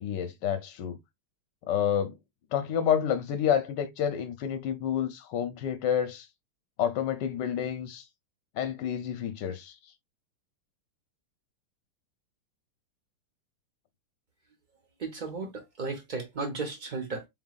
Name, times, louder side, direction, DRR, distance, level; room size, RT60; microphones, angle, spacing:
voice 1, 0.0-1.0 1.7-2.1 2.5-6.3 6.8-8.0 8.6-9.7, left 9 dB, 70° left, 1.1 m, -29 dB
voice 2, 15.0-17.3, right 3 dB, 90° right, 0.4 m, -35 dB
4.5 x 4.0 x 2.3 m
omnidirectional pair, 2.3 m